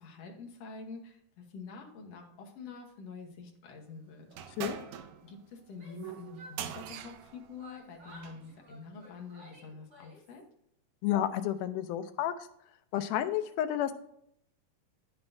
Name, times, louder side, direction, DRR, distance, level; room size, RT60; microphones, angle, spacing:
voice 1, 0.0-4.3 5.2-10.4, left 4 dB, 60° left, 2 dB, 1.9 m, -47 dB
sound 1, 4.3-8.5, right 9 dB, 80° right, 1.6 m, -43 dB
Yell, 5.6-7.3 7.6-10.4, equal, 30° right, 3.1 m, -55 dB
voice 2, 11.0-12.3 12.9-13.9, left 11 dB, 80° left, 9 dB, 2.1 m, -31 dB
9.6 x 7.8 x 2.6 m, 0.73 s
omnidirectional pair, 3.8 m